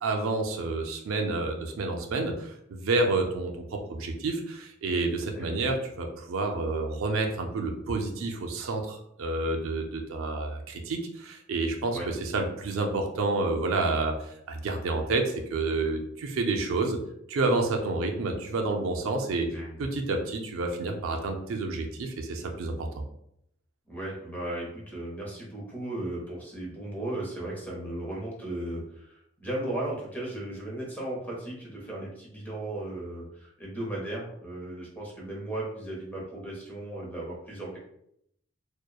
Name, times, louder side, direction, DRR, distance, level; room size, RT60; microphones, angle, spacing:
voice 1, 0.0-17.0 17.3-22.9, right 3 dB, 90° right, 3 dB, 0.4 m, -29 dB
voice 2, 5.4-5.7 11.9-12.1 19.5-19.8 23.9-37.8, right 1 dB, 10° left, -4 dB, 0.8 m, -36 dB
2.8 x 2.1 x 2.2 m, 0.74 s
head